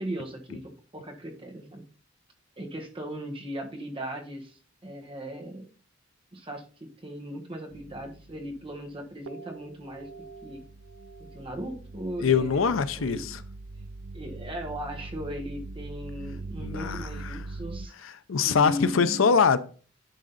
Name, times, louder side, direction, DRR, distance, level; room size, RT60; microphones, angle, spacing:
voice 1, 0.0-1.8 2.6-5.7 6.3-10.1 10.4-10.6 11.3-13.3 14.1-17.9 18.4-19.3, equal, 25° right, 1.3 m, -38 dB
sound 1, 7.7-8.9 9.3-17.9, right 3 dB, 85° right, 0.4 m, -42 dB
voice 2, 12.2-13.4 16.6-17.4 18.0-19.6, left 6 dB, 80° left, 0.6 m, -24 dB
10.5 x 3.8 x 4.0 m
head